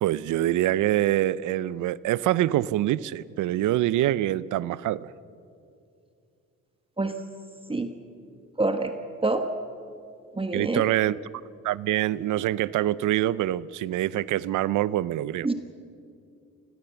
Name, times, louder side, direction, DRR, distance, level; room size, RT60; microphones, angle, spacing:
voice 1, 0.0-5.1 10.5-11.2 11.6-15.5, right 14 dB, 80° right, 0.6 m, -25 dB
voice 2, 8.6-8.9 9.2-9.4 10.4-10.8 15.4-15.5, right 2 dB, 20° right, 1.3 m, -25 dB
25.0 x 17.5 x 7.1 m
cardioid pair, 90°, 30 cm